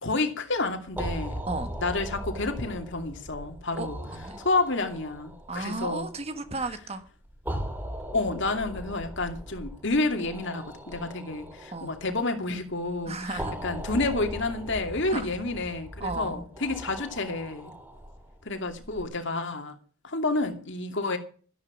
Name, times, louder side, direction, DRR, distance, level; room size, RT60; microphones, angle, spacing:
voice 1, 0.0-1.4 1.8-4.0 4.4-6.1 8.1-17.7 18.4-19.7 20.0-21.2, left 2 dB, 55° left, 2.5 m, -29 dB
sound 1, 0.9-19.0, equal, 10° right, 2.0 m, -39 dB
voice 2, 3.7-4.4 5.5-7.1 11.7-11.9 13.1-13.6 15.1-15.3 16.0-16.5, right 3 dB, 25° right, 1.5 m, -34 dB
13.0 x 10.5 x 6.1 m
head